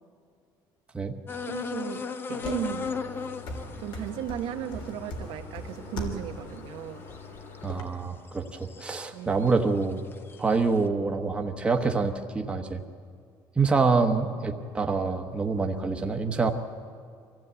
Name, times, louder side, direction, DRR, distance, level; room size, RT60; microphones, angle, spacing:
sound 1, 1.3-7.7 8.3-9.1 9.4-10.6, left 5 dB, 25° left, 0.7 m, -38 dB
voice 1, 1.5-2.9 3.8-7.0 9.1-9.4, right 10 dB, 90° right, 5 dB, 1.2 m, -36 dB
sound 2, 2.4-7.8, left 2 dB, 65° left, 2.9 m, -39 dB
voice 2, 7.6-10.0 10.4-12.8 13.6-16.5, right 4 dB, 10° right, 3 dB, 1.1 m, -26 dB
23.5 x 15.5 x 8.2 m, 2.2 s
cardioid pair, 170°, 9 cm